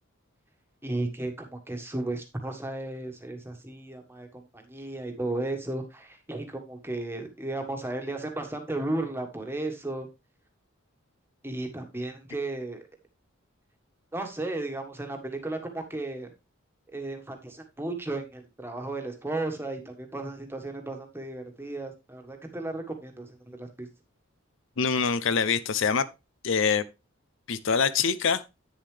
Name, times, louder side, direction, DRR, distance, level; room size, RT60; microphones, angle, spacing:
voice 1, 0.8-10.1 11.4-12.8 14.1-16.3 16.9-23.9, right 2 dB, 10° right, 1.5 m, -34 dB
voice 2, 24.8-26.0 26.4-26.8 27.5-28.4, left 6 dB, 60° left, 0.5 m, -24 dB
9.5 x 7.0 x 3.2 m
head